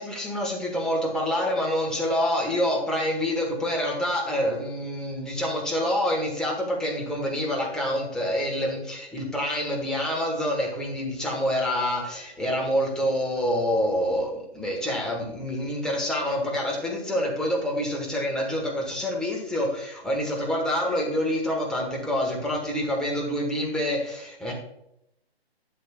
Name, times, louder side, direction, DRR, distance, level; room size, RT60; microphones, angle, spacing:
voice 1, 0.0-24.5, equal, ahead, -3 dB, 1.3 m, -27 dB
12.0 x 6.6 x 2.3 m, 0.77 s
figure-of-eight pair, 145°, 31 cm